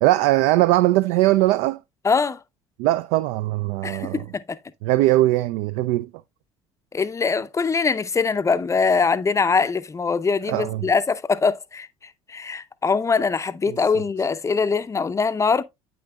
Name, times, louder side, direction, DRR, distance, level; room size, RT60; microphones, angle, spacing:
voice 1, 0.0-1.8 2.8-4.2 4.8-6.1 10.4-10.9 13.7-13.8, right 16 dB, 60° right, 0.4 m, -20 dB
voice 2, 2.0-2.4 3.8-4.6 6.9-15.6, left 5 dB, 20° left, 0.5 m, -22 dB
8.9 x 6.1 x 2.3 m
figure-of-eight pair, 60°, 16 cm